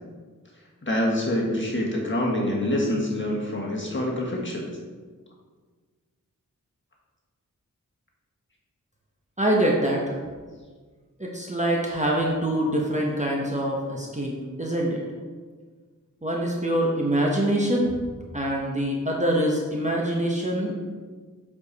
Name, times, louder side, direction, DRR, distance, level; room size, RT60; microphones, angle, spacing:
voice 1, 0.8-4.6, left 1 dB, 35° left, -3 dB, 1.5 m, -26 dB
voice 2, 9.4-10.0 11.2-14.3 14.6-15.0 16.2-17.9 18.3-20.7, right 1 dB, 20° right, -2 dB, 1.1 m, -24 dB
7.7 x 4.9 x 4.1 m, 1.5 s
cardioid pair, 45°, 33 cm